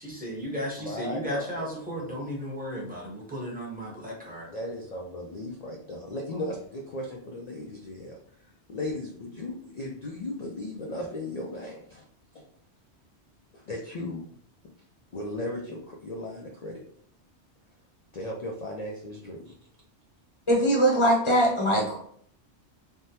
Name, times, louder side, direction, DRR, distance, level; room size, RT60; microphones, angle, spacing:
voice 1, 0.0-4.5, equal, 10° right, -4 dB, 0.8 m, -35 dB
voice 2, 0.8-1.7 1.9-2.2 4.5-8.2 8.7-12.1 12.3-12.4 13.5-14.2 15.1-16.8 18.1-19.5, left 1 dB, 55° left, -1 dB, 0.4 m, -36 dB
voice 3, 20.5-22.0, equal, 30° left, -2 dB, 0.8 m, -22 dB
3.4 x 2.1 x 2.8 m, 0.62 s
omnidirectional pair, 1.2 m